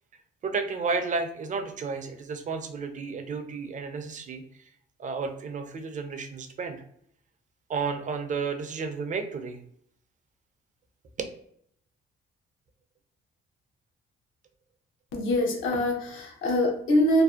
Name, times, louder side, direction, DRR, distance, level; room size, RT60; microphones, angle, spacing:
voice 1, 0.4-4.7 5.0-6.8 7.7-9.6 11.2-11.3, right 4 dB, 40° right, 7 dB, 0.4 m, -32 dB
voice 2, 15.1-17.2, left 1 dB, 85° left, 0 dB, 0.7 m, -24 dB
2.6 x 2.1 x 2.3 m, 0.67 s
cardioid pair, 90°, 20 cm